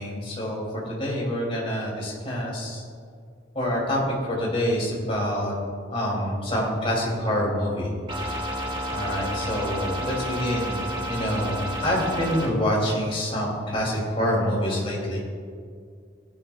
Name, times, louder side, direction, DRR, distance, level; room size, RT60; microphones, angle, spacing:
voice 1, 0.0-2.8 3.5-5.5 5.9-7.9 8.2-8.4 8.9-10.8 11.0-15.2, equal, 30° left, -4 dB, 3.0 m, -26 dB
sound 1, 8.1-12.5, equal, 25° right, 1.3 m, -31 dB
16.0 x 9.9 x 2.4 m, 2.1 s
head